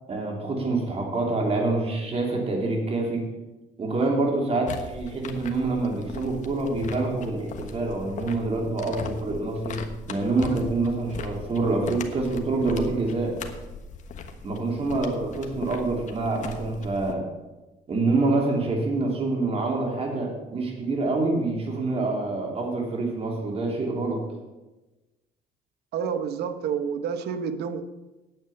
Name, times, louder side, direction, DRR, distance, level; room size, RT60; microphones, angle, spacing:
voice 1, 0.1-3.2 3.8-9.8 10.1-13.3 14.4-17.3 17.9-24.2, right 3 dB, 35° right, 0 dB, 3.1 m, -26 dB
sound 1, 4.7-17.1, left 5 dB, 45° left, 1.2 m, -39 dB
voice 2, 25.9-27.8, right 7 dB, 75° right, 10 dB, 1.0 m, -29 dB
9.2 x 8.8 x 7.0 m, 1.1 s
cardioid pair, 110°, 17 cm